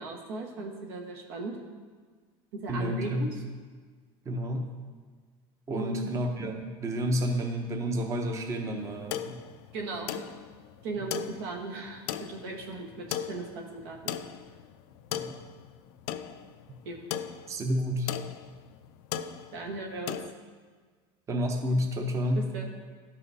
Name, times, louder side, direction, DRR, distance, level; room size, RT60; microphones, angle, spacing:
voice 1, 0.0-1.6 2.5-3.4 5.7-6.0 9.7-10.2 10.8-14.1 16.8-17.0 19.5-20.2 22.3-22.6, right 3 dB, 80° right, 1 dB, 1.3 m, -37 dB
voice 2, 2.7-3.2 4.3-4.7 5.7-9.4 15.1-15.3 17.5-18.1 21.3-22.5, equal, 25° right, 3 dB, 0.7 m, -30 dB
sound 1, 8.8-20.3, left 10 dB, 65° left, 0.4 m, -38 dB
12.5 x 5.7 x 2.7 m, 1.5 s
supercardioid pair, 125°, 13 cm